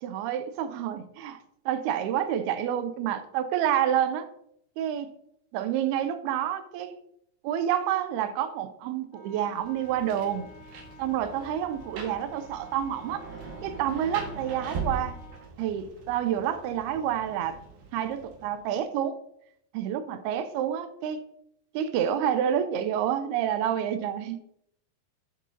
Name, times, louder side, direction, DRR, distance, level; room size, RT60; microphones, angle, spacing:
voice 1, 0.0-1.4 1.7-4.3 4.8-5.1 5.5-7.0 7.4-10.5 11.0-13.2 13.6-15.2 15.6-17.6 17.9-19.2 19.7-21.2 21.7-24.5, right 10 dB, 85° right, 10 dB, 2.5 m, -28 dB
Wind instrument woodwind instrument, 9.1-15.5, left 3 dB, 70° left, 3.0 m, -51 dB
Rain, 9.6-18.6, right 4 dB, 70° right, 3.2 m, -41 dB
11.0 x 6.8 x 2.7 m, 0.74 s
omnidirectional pair, 4.5 m